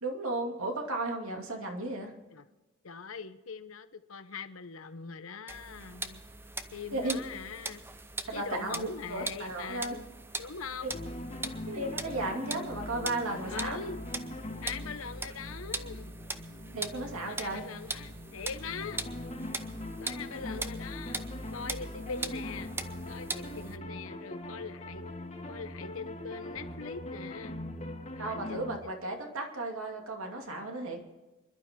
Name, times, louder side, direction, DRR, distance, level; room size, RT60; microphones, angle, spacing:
voice 1, 0.0-2.1 6.9-7.2 8.3-10.0 10.8-10.9 11.7-13.8 16.7-17.7 28.2-31.0, right 2 dB, 75° right, 2 dB, 2.6 m, -35 dB
voice 2, 2.8-6.2 6.7-7.8 8.3-10.1 10.4-11.0 13.5-14.0 14.6-16.2 17.1-19.0 20.0-21.2 21.5-22.7 23.1-25.1 25.5-27.7 28.2-28.9, left 5 dB, 75° left, 11 dB, 0.9 m, -42 dB
sound 1, 5.5-23.8, right 3 dB, 10° right, 0.7 m, -41 dB
sound 2, 10.9-28.8, left 1 dB, 35° left, 1.9 m, -41 dB
26.5 x 11.5 x 3.7 m, 1.2 s
head